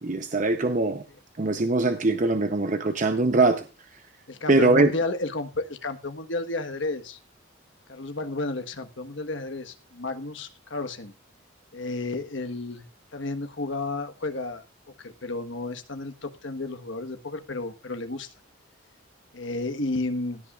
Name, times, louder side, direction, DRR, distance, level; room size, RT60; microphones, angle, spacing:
voice 1, 0.0-1.0 1.4-3.6 4.5-4.9, right 2 dB, 40° right, 0.8 m, -22 dB
voice 2, 4.3-7.2 7.9-11.1 11.7-12.9 13.1-14.6 15.0-18.3 19.3-20.4, left 2 dB, 65° left, 1.4 m, -32 dB
16.5 x 10.0 x 2.5 m
head